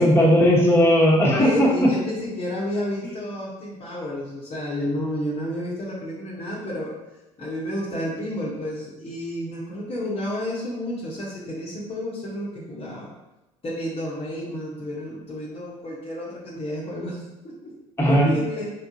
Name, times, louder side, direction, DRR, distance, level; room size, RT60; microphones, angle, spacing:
voice 1, 0.0-1.9 18.0-18.3, equal, 15° left, -4 dB, 1.2 m, -17 dB
voice 2, 1.4-7.0 7.4-13.1 13.6-17.7 18.1-18.7, left 1 dB, 35° left, -6 dB, 1.0 m, -31 dB
3.8 x 3.6 x 2.7 m, 1.0 s
hypercardioid pair, 60°, 17 cm